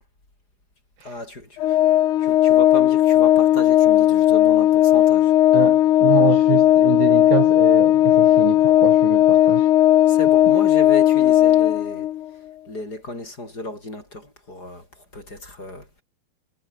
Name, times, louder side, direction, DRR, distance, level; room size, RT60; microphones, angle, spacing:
voice 1, 1.0-1.8 2.2-5.3 10.1-12.1 12.7-16.0, left 1 dB, 20° left, 7.8 m, -34 dB
Organ, 1.6-12.3, left 13 dB, 70° left, 2.0 m, -16 dB
voice 2, 5.5-9.7, right 18 dB, 80° right, 2.1 m, -26 dB
omnidirectional pair, 4.9 m